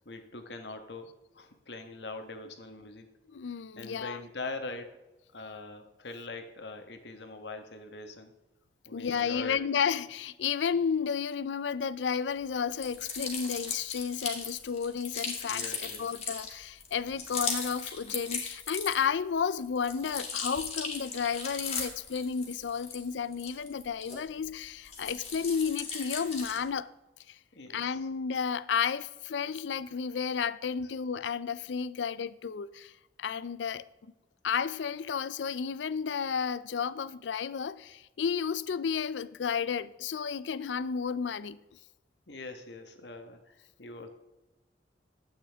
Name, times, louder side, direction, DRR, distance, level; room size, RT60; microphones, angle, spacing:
voice 1, 0.0-3.1 3.7-5.0 5.3-8.3 8.8-9.6 15.4-16.2 27.5-28.1 30.1-30.2 30.8-31.0 42.3-44.1, left 3 dB, 70° left, 1.3 m, -43 dB
voice 2, 3.3-4.2 8.9-26.9 27.3-27.4 27.7-32.9 33.2-33.8 34.4-41.6, left 6 dB, 85° left, 0.4 m, -32 dB
sound 1, 12.8-19.2 19.6-24.5 24.8-26.7, left 5 dB, 35° left, 2.3 m, -37 dB
12.0 x 8.7 x 3.5 m
head